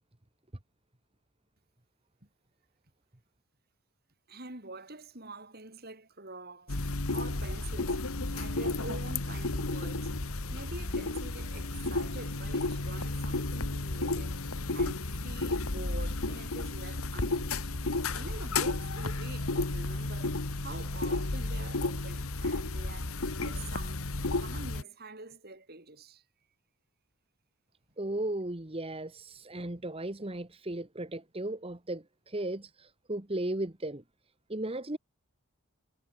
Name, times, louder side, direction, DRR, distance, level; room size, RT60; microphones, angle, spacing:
voice 1, 4.3-8.0 8.3-10.1 10.5-14.5 14.7-17.6 18.1-24.0 24.4-26.2, right 2 dB, 45° right, 5.7 m, -46 dB
sound 1, 6.7-24.8, left 2 dB, 75° left, 1.8 m, -32 dB
voice 2, 28.0-34.0 34.5-35.0, right 1 dB, 25° right, 1.3 m, -36 dB
head